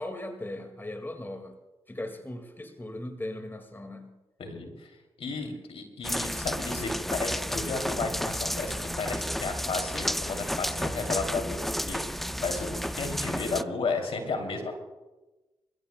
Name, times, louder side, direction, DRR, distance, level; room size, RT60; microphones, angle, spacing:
voice 1, 0.0-1.6 1.9-4.1 5.3-5.5, left 1 dB, 20° left, 6 dB, 2.0 m, -38 dB
voice 2, 4.4-4.9 5.2-14.7, left 4 dB, 70° left, 4 dB, 2.9 m, -33 dB
sound 1, 6.0-13.6, equal, ahead, 0.4 m, -32 dB
28.0 x 15.0 x 2.3 m, 1.1 s
supercardioid pair, 45°, 10 cm